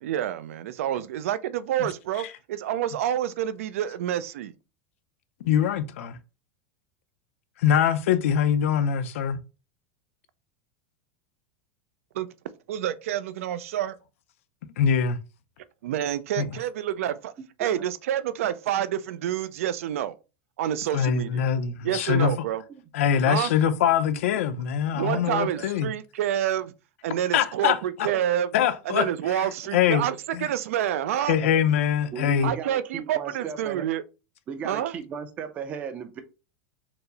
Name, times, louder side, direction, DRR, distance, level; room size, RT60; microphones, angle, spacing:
voice 1, 0.0-4.5 12.1-12.3 12.7-14.0 15.8-17.3 17.6-20.1 20.6-21.4 21.8-22.6 23.2-23.5 24.9-26.7 27.0-28.5 28.9-31.4 32.4-34.0 34.6-34.9, right 11 dB, 80° right, 0.4 m, -28 dB
voice 2, 5.4-6.2 7.6-9.4 14.8-15.2 16.4-16.5 20.9-22.3 22.9-25.9 27.3-28.1 28.5-29.1 29.7-30.0 30.3-30.5 31.3-32.5, left 8 dB, 70° left, 0.5 m, -23 dB
voice 3, 25.1-25.7 28.1-28.2 30.4-30.5 32.1-33.9 34.5-36.2, right 7 dB, 20° right, 0.4 m, -36 dB
4.5 x 2.0 x 3.8 m
supercardioid pair, 175°, 7 cm